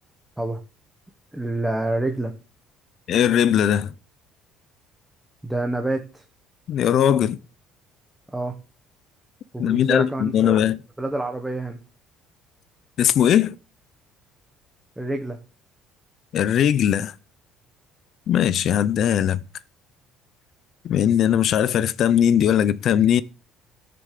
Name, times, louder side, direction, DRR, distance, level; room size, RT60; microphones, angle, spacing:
voice 1, 1.3-2.3 5.4-6.2 8.3-8.6 9.5-10.6 11.0-11.8 15.0-15.4, right 2 dB, 5° right, 1.1 m, -27 dB
voice 2, 3.1-3.9 6.7-7.4 9.6-10.8 13.0-13.6 16.3-17.1 18.3-19.4 20.8-23.2, left 9 dB, 45° left, 0.6 m, -19 dB
13.0 x 6.8 x 6.6 m
cardioid pair, 155°, 0 cm